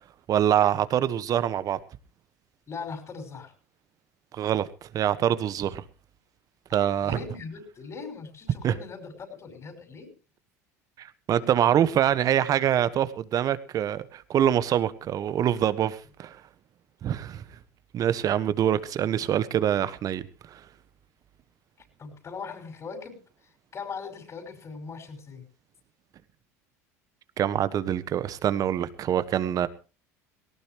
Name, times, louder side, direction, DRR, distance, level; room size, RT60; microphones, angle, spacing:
voice 1, 0.3-1.8 4.3-5.8 6.7-7.2 8.6-8.7 11.0-16.4 17.0-17.4 17.9-20.6 27.4-29.7, right 10 dB, 45° right, 15 dB, 1.4 m, -25 dB
voice 2, 2.7-3.5 6.7-10.1 11.4-11.5 22.0-23.2 23.7-25.5, left 5 dB, 35° left, 6 dB, 5.9 m, -40 dB
18.5 x 18.0 x 3.1 m, 0.33 s
hypercardioid pair, 80°, 8 cm